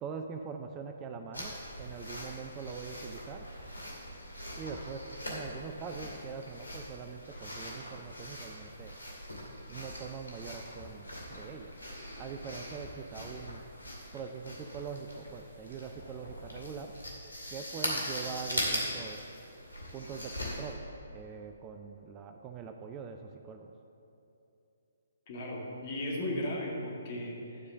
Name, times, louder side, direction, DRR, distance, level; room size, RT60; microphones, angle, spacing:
voice 1, 0.0-3.5 4.6-9.0 9.7-11.7 12.2-13.6 14.1-16.9 17.5-19.2 19.9-20.8 21.1-23.7, right 6 dB, 25° right, 5 dB, 0.5 m, -43 dB
sound 1, 1.3-20.7, equal, 90° left, 2.3 m, -41 dB
voice 2, 25.3-27.6, left 1 dB, 40° left, -3 dB, 2.1 m, -36 dB
11.5 x 5.0 x 6.7 m, 2.8 s
figure-of-eight pair, 130°, 0 cm